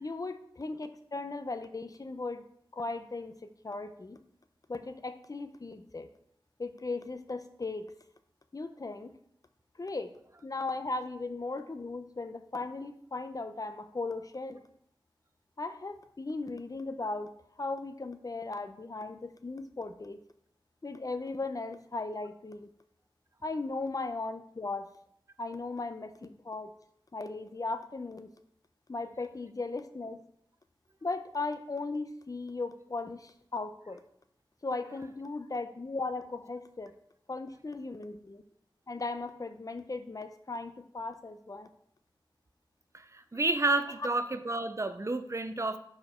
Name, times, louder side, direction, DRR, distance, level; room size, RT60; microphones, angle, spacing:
voice 1, 0.0-2.4 2.7-4.2 4.7-6.1 6.6-7.9 8.5-9.1 9.8-10.1 10.4-14.6 15.6-17.3 17.6-20.2 20.8-22.7 23.4-24.9 25.4-26.7 27.1-28.3 28.9-30.2 31.0-34.0 34.6-36.9 37.3-38.4 38.9-41.7 44.0-44.1, left 3 dB, 45° left, 9 dB, 0.6 m, -37 dB
voice 2, 42.9-45.8, right 2 dB, 35° right, 10 dB, 0.5 m, -30 dB
5.6 x 4.5 x 4.3 m, 0.69 s
wide cardioid pair, 45°, 9 cm